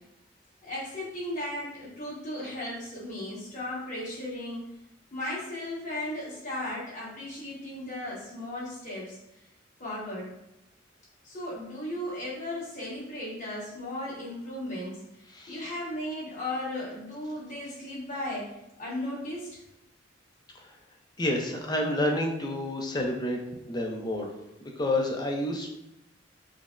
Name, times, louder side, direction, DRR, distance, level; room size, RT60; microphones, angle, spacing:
voice 1, 0.6-4.6 5.1-9.2 9.8-10.3 11.2-15.0 15.5-18.5 18.8-19.6, left 1 dB, 40° left, -7 dB, 1.3 m, -36 dB
voice 2, 21.2-23.4 23.7-24.3 24.6-25.7, left 1 dB, 20° left, 1 dB, 0.4 m, -29 dB
5.0 x 2.0 x 2.4 m, 0.86 s
head